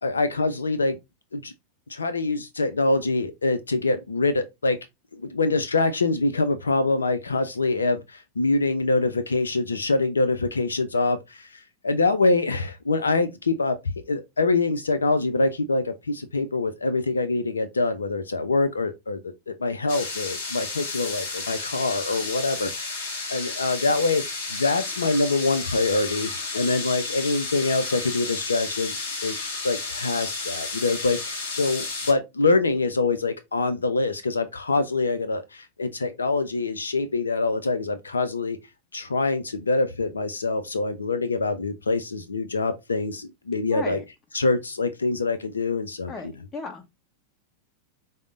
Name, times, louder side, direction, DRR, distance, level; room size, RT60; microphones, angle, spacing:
voice 1, 0.0-1.0 1.3-1.5 1.9-4.8 5.1-13.8 14.1-24.2 24.5-28.9 29.2-29.4 29.6-38.6 38.9-44.0 44.3-46.1, left 3 dB, 75° left, 0.4 m, -25 dB
sound 1, 19.9-32.1, left 3 dB, 55° left, 1.3 m, -32 dB
voice 2, 43.7-44.0 46.1-46.9, left 4 dB, 20° left, 1.0 m, -35 dB
4.9 x 2.0 x 3.6 m
figure-of-eight pair, 90°, 0 cm